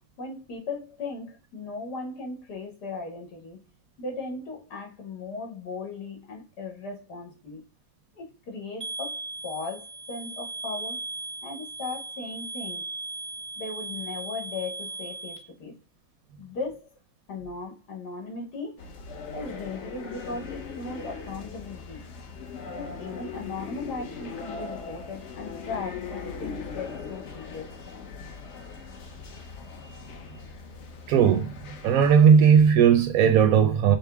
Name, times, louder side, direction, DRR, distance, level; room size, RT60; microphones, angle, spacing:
voice 1, 0.2-3.7 4.0-7.6 8.2-11.0 11.4-12.9 13.6-15.8 16.4-16.9 17.3-18.9 19.3-22.1 22.7-27.8, left 3 dB, 75° left, 1.9 m, -37 dB
sound 1, 8.8-15.4, right 3 dB, ahead, 0.5 m, -37 dB
sound 2, 18.8-32.7, left 5 dB, 55° left, 0.8 m, -40 dB
voice 2, 31.1-31.5 31.8-34.0, right 7 dB, 70° right, 0.9 m, -17 dB
5.4 x 2.0 x 3.4 m
omnidirectional pair, 1.8 m